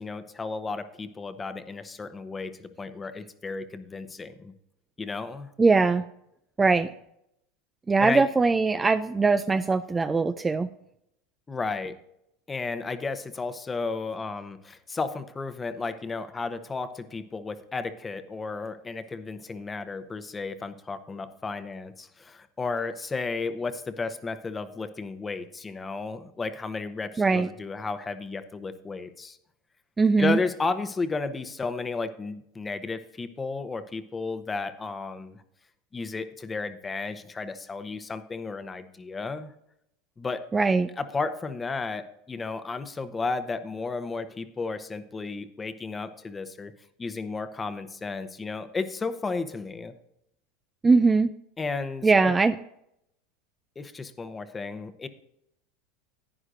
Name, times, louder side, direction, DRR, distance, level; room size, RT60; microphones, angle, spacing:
voice 1, 0.0-4.5 5.0-5.5 8.0-8.3 11.5-11.9 12.5-29.4 30.2-35.4 35.9-39.5 40.2-40.5 41.0-46.7 47.0-49.9 51.6-52.3 53.8-55.1, left 4 dB, 20° left, 10 dB, 0.8 m, -33 dB
voice 2, 5.6-6.1 6.6-6.9 7.9-10.7 27.2-27.5 30.0-30.4 40.5-40.9 50.8-51.3 52.0-52.5, right 4 dB, 15° right, 11 dB, 0.4 m, -21 dB
11.0 x 9.7 x 2.6 m, 0.78 s
supercardioid pair, 115°, 0 cm